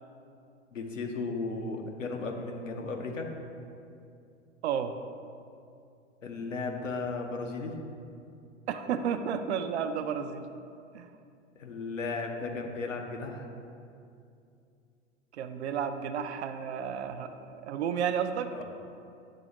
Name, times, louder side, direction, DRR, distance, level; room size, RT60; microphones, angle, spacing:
voice 1, 0.7-3.3 6.2-7.8 11.6-13.5 18.5-18.6, left 3 dB, 80° left, 3 dB, 0.8 m, -35 dB
voice 2, 8.7-10.5 10.9-11.1 15.3-18.5, right 7 dB, 60° right, 8 dB, 0.5 m, -32 dB
7.6 x 2.7 x 5.1 m, 2.5 s
figure-of-eight pair, 100°, 38 cm